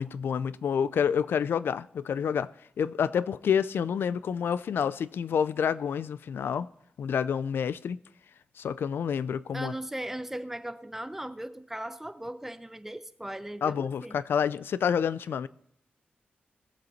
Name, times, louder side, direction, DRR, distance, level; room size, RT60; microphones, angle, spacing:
voice 1, 0.0-2.5 2.8-6.7 7.0-8.0 8.6-9.7 13.6-15.5, left 7 dB, 90° left, 0.4 m, -28 dB
voice 2, 9.5-14.2, right 1 dB, 10° right, 0.6 m, -38 dB
19.5 x 7.9 x 4.1 m
wide cardioid pair, 90°, 4 cm